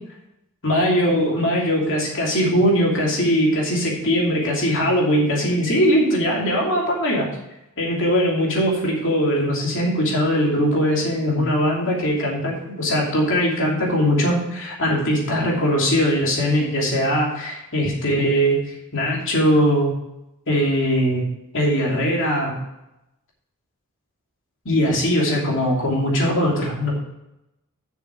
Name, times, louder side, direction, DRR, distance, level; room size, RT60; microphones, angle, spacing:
voice 1, 0.6-7.3 7.8-19.9 20.5-21.2 21.5-22.5 24.6-26.9, equal, 60° left, -2 dB, 2.9 m, -20 dB
7.1 x 6.3 x 6.2 m, 0.89 s
head